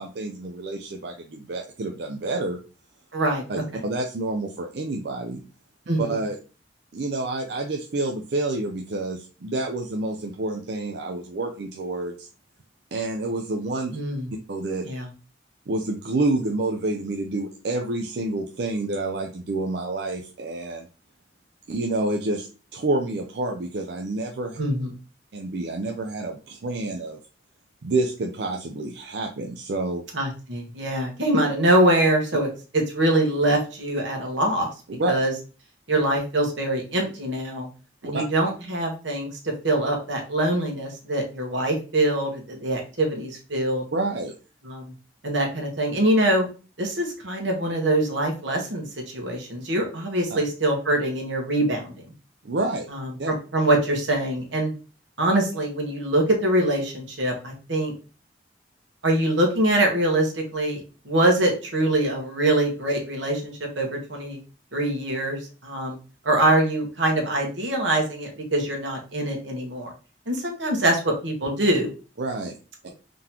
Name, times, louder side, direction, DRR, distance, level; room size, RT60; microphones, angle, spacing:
voice 1, 0.0-2.6 3.5-5.4 6.0-6.4 6.9-12.3 12.9-14.0 14.5-14.8 15.7-20.9 21.7-24.6 25.3-27.2 27.8-30.0 35.0-35.1 38.0-38.2 43.9-44.3 50.3-50.4 52.4-52.9 53.2-53.3 72.2-72.5, right 2 dB, 60° right, 3 dB, 0.5 m, -28 dB
voice 2, 3.1-3.4 5.9-6.1 13.9-14.3 14.8-15.1 24.6-24.9 30.1-32.5 32.7-34.7 35.1-35.3 35.9-37.7 38.0-39.3 39.6-43.8 44.6-44.9 45.2-46.5 46.8-51.9 52.9-54.7 55.2-57.9 59.0-64.4 64.7-66.0 66.2-69.9 70.3-71.9, right 1 dB, 85° right, 1 dB, 1.3 m, -24 dB
3.7 x 3.6 x 2.9 m, 0.35 s
head